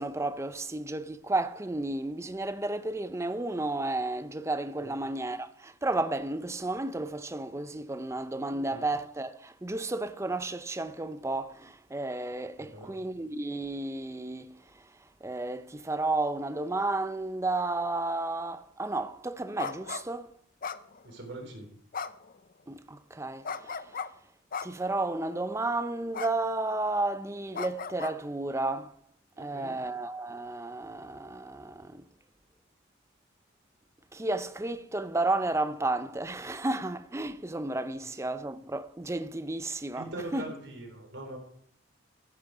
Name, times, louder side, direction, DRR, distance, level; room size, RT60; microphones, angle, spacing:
voice 1, 0.0-14.6 15.2-20.3 22.7-23.9 24.6-28.9 29.4-32.1 34.1-40.4, right 2 dB, 15° right, 0.6 m, -32 dB
voice 2, 8.5-8.8 12.6-12.9 21.0-21.7 29.4-29.7 38.0-38.1 39.9-41.4, right 2 dB, 65° right, 4.1 m, -42 dB
sound 1, 19.6-20.0 20.6-21.3 21.9-22.3 23.4-24.1 24.5-24.9 26.1-26.3 26.6-26.9 27.5-28.1, left 5 dB, 45° left, 0.6 m, -36 dB
14.5 x 10.5 x 4.9 m
head